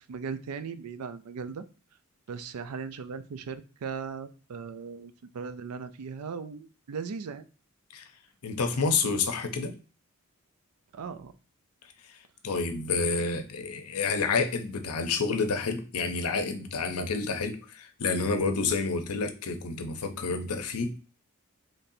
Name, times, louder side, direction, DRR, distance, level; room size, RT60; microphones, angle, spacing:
voice 1, 0.0-1.6 2.3-7.5 10.9-11.3 20.1-20.2, right 5 dB, 90° right, 0.4 m, -38 dB
voice 2, 8.4-9.7 12.4-21.0, left 4 dB, 85° left, 0.6 m, -29 dB
4.1 x 3.2 x 2.6 m
head